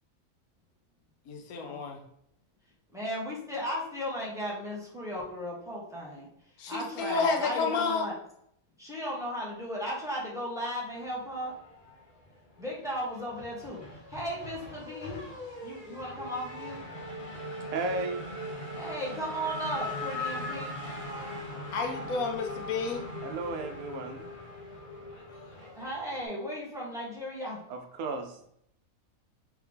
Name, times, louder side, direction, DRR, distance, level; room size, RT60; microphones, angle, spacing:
voice 1, 1.3-2.0 6.6-8.1 21.7-23.0, left 5 dB, 90° left, 3 dB, 1.1 m, -30 dB
voice 2, 2.9-6.3 6.7-8.2 8.8-11.5 12.6-15.2 15.6-16.8 18.7-20.9 25.7-27.6, equal, 5° right, -5 dB, 1.1 m, -36 dB
Race car auto racing / Accelerating revving vroom, 11.3-12.3 12.6-26.3, left 1 dB, 40° left, 1.1 m, -40 dB
voice 3, 17.7-18.2 23.2-24.2 27.7-28.2, right 3 dB, 85° right, 5 dB, 1.1 m, -34 dB
3.5 x 3.5 x 3.3 m, 0.73 s
omnidirectional pair, 1.5 m